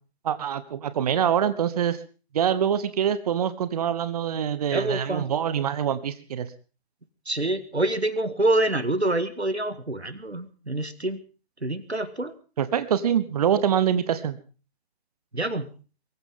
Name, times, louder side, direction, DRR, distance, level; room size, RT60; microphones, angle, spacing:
voice 1, 0.2-2.0 2.3-6.5 12.6-14.4, right 9 dB, 35° right, 13 dB, 1.1 m, -25 dB
voice 2, 4.7-5.3 7.3-11.2 11.6-12.3 15.3-15.7, right 1 dB, 90° right, 12 dB, 1.9 m, -26 dB
23.5 x 14.5 x 3.8 m, 0.37 s
figure-of-eight pair, 135°, 32 cm